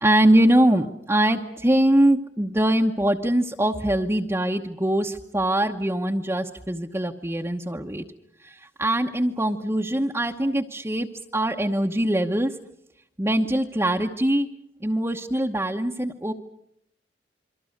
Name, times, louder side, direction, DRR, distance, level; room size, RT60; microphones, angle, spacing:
voice 1, 0.0-8.0 8.4-11.1 11.3-12.5 13.2-14.5 14.8-16.3, right 1 dB, 15° right, 0 dB, 1.0 m, -22 dB
28.0 x 23.5 x 6.6 m, 0.73 s
head